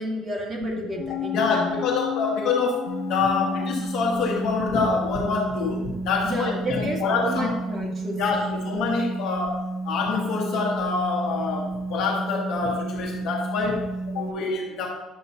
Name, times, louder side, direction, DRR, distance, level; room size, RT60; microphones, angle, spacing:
voice 1, 0.0-1.7 6.2-8.6, right 1 dB, 25° right, -2 dB, 2.0 m, -31 dB
sound 1, 0.9-4.7 5.1-5.2, left 10 dB, 45° left, 1.0 m, -33 dB
voice 2, 1.1-7.5 8.2-14.9, left 4 dB, 60° left, -1 dB, 1.5 m, -26 dB
sound 2, 2.9-14.3, right 2 dB, 85° right, 1.4 m, -32 dB
10.5 x 7.5 x 2.8 m, 1.0 s
cardioid pair, 150°, 0 cm